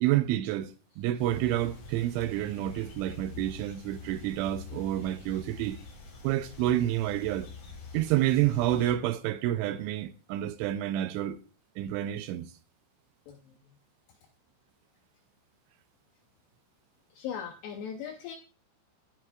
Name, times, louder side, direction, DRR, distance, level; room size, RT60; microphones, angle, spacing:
voice 1, 0.0-5.8 6.2-7.5 7.9-11.4 11.8-12.5, right 13 dB, 85° right, 2.8 m, -29 dB
sound 1, 1.2-8.9, left 5 dB, 65° left, 5.1 m, -46 dB
voice 2, 13.3-13.6 17.1-18.4, left 8 dB, 85° left, 2.4 m, -39 dB
15.5 x 7.4 x 2.3 m
omnidirectional pair, 5.9 m